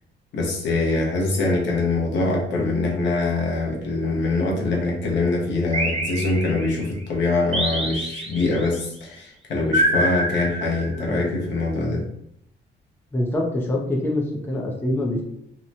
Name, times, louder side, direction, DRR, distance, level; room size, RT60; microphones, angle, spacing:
voice 1, 0.3-12.0, left 2 dB, 65° left, -2 dB, 0.8 m, -23 dB
sound 1, 5.7-6.9 7.5-8.7 9.7-11.2, right 1 dB, 30° right, 0.6 m, -25 dB
voice 2, 13.1-15.2, left 1 dB, 10° left, 0 dB, 0.5 m, -24 dB
2.8 x 2.1 x 2.6 m, 0.74 s
cardioid pair, 100°, 20 cm